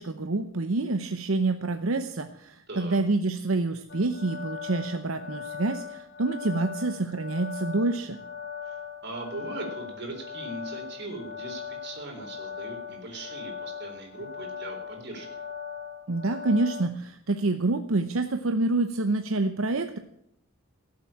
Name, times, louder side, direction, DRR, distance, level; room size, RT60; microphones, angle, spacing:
voice 1, 0.0-8.2 16.1-20.0, right 2 dB, 85° right, 8 dB, 0.9 m, -27 dB
voice 2, 2.7-3.0 8.7-15.3, right 2 dB, 55° right, 3 dB, 3.7 m, -39 dB
sound 1, 3.9-16.8, left 7 dB, 60° left, 1.5 m, -39 dB
17.5 x 7.6 x 8.7 m, 0.73 s
head